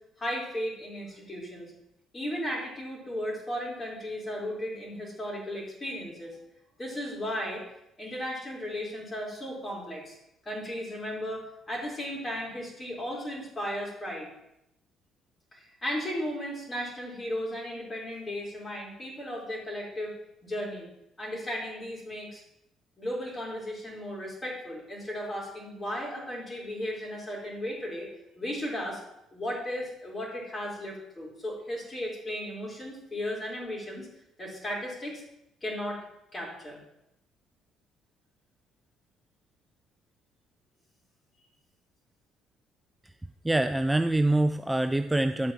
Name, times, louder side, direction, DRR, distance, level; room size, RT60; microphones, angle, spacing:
voice 1, 0.2-1.7 2.1-6.4 6.8-7.6 8.0-10.1 10.4-14.3 15.5-20.1 20.4-20.9 21.2-22.4 23.0-28.1 28.4-29.0 29.3-34.1 34.4-35.2 35.6-36.0 36.3-36.8, equal, 30° left, -3 dB, 4.3 m, -35 dB
voice 2, 43.4-45.5, right 2 dB, 10° right, 9 dB, 0.4 m, -25 dB
11.5 x 8.5 x 3.0 m, 0.81 s
hypercardioid pair, 50°, 0 cm